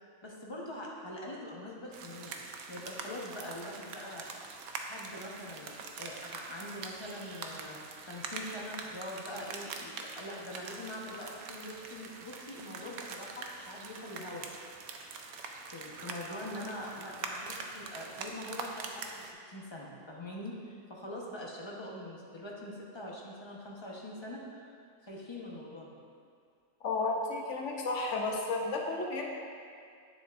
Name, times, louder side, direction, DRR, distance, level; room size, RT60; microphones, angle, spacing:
voice 1, 0.0-4.3 4.8-7.8 8.1-14.5 15.7-25.9, left 1 dB, 20° left, -3 dB, 0.9 m, -43 dB
sound 1, 1.9-19.3, right 4 dB, 80° right, 1.1 m, -44 dB
voice 2, 26.8-29.3, left 3 dB, 60° left, 0 dB, 1.0 m, -32 dB
9.7 x 7.3 x 2.5 m, 2.3 s
omnidirectional pair, 1.5 m